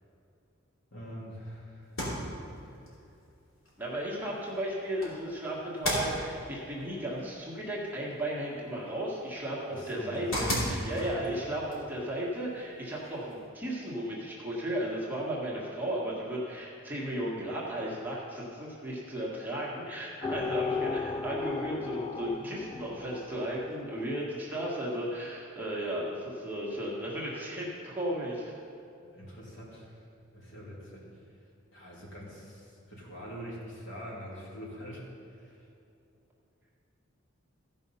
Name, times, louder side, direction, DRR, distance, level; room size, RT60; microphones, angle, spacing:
voice 1, 0.9-1.9 9.7-10.2 11.0-11.2 29.0-30.0 30.3-31.2 31.7-35.0 35.3-35.7, equal, 65° left, -5 dB, 2.9 m, -44 dB
sound 1, 1.8-13.5, equal, 80° left, 2.9 m, -39 dB
voice 2, 3.8-28.6, right 1 dB, 10° right, -6 dB, 1.6 m, -35 dB
sound 2, 20.2-24.3, left 4 dB, 20° left, 0.3 m, -35 dB
15.0 x 5.4 x 5.5 m, 2.7 s
head